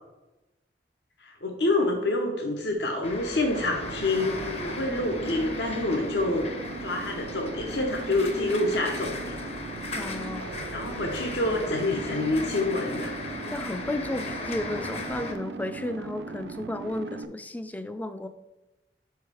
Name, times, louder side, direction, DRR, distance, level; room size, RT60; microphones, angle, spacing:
voice 1, 1.2-6.5 6.8-9.3 10.7-13.1, left 2 dB, 75° left, 2 dB, 0.8 m, -27 dB
sound 1, 3.0-15.3, left 3 dB, 35° left, 0.7 m, -37 dB
sound 2, 3.5-17.3, right 4 dB, 70° right, 0.4 m, -39 dB
voice 2, 10.0-10.5 13.5-18.3, left 1 dB, 10° left, 9 dB, 0.3 m, -33 dB
5.3 x 4.6 x 4.8 m, 1.0 s
head